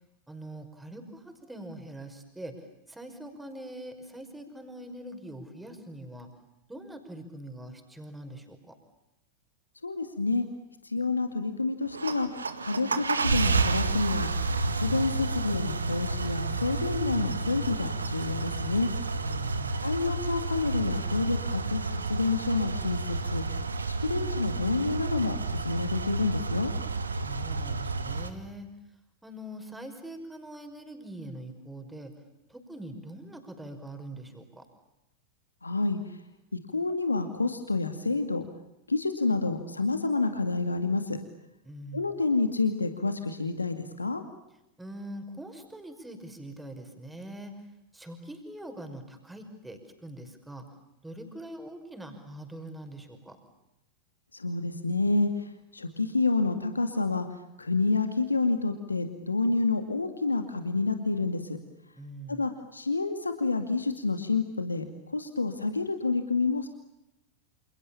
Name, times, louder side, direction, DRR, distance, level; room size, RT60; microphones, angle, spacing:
voice 1, 0.3-6.3 6.7-8.8 19.2-19.8 27.2-28.7 29.2-32.1 32.5-34.7 41.6-42.1 44.8-47.7 47.9-50.7 51.0-53.4 62.0-62.5, right 1 dB, 5° right, 6 dB, 5.5 m, -43 dB
voice 2, 9.8-10.5 10.8-12.3 12.6-18.9 19.8-23.7 24.0-26.7 35.6-36.2 36.5-38.4 38.9-41.2 41.9-44.2 54.3-61.6 62.3-66.7, left 3 dB, 80° left, 7 dB, 2.2 m, -29 dB
sound 1, 11.8-28.3, right 3 dB, 75° right, 2.0 m, -30 dB
29.0 x 28.5 x 7.2 m, 0.88 s
figure-of-eight pair, 90°, 0 cm